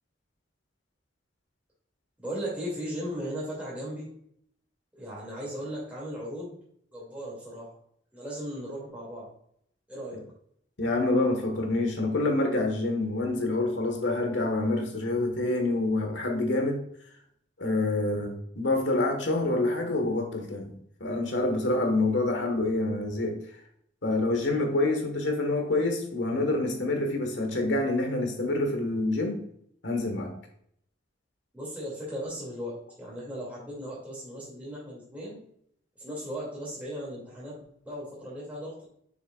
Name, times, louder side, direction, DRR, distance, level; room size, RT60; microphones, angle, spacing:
voice 1, 2.2-4.1 5.0-6.6 6.9-7.7 8.1-9.3 9.9-10.2 31.5-35.4 36.0-38.9, equal, 10° right, -6 dB, 2.4 m, -37 dB
voice 2, 10.8-16.8 17.6-20.7 21.0-23.4 24.0-29.4 29.8-30.3, left 2 dB, 75° left, 3 dB, 1.5 m, -27 dB
6.7 x 6.4 x 2.4 m, 0.68 s
head